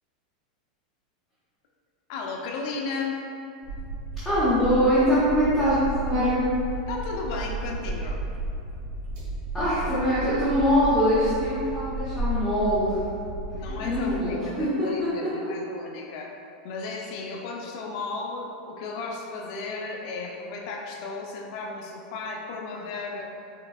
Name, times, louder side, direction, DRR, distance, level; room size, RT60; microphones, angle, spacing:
voice 1, 2.1-3.2 6.9-8.2 13.5-16.3 16.6-23.3, left 3 dB, 50° left, 0 dB, 0.6 m, -34 dB
sound 1, 3.6-14.3, right 1 dB, 40° right, 1.4 m, -33 dB
voice 2, 4.2-6.4 9.5-13.0 13.6-15.3, equal, 5° right, -15 dB, 1.0 m, -23 dB
5.5 x 3.9 x 2.4 m, 2.6 s
supercardioid pair, 160°, 4 cm